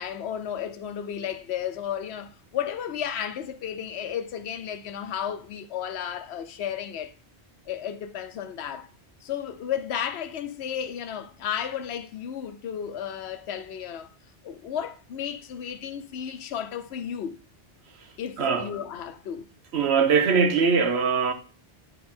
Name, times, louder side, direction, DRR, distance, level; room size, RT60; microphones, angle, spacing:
voice 1, 0.0-7.1 7.7-8.9 9.2-14.1 14.4-17.4 18.2-19.5, left 9 dB, 80° left, 0.9 m, -33 dB
voice 2, 18.4-18.7 19.7-21.3, right 5 dB, 85° right, 1.2 m, -21 dB
9.1 x 4.0 x 4.3 m
omnidirectional pair, 1.1 m